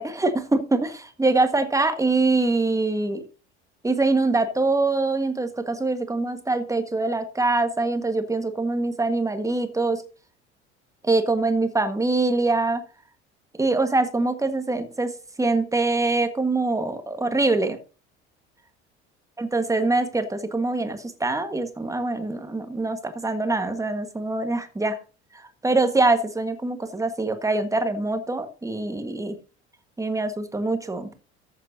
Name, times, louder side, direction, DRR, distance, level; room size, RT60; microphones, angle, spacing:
voice 1, 0.0-3.2 3.8-10.0 11.0-12.8 13.6-15.1 15.4-17.8 19.4-25.0 25.3-29.4 30.0-31.1, right 3 dB, 10° right, 9 dB, 1.5 m, -24 dB
14.0 x 7.5 x 2.7 m, 0.35 s
figure-of-eight pair, 65°, 34 cm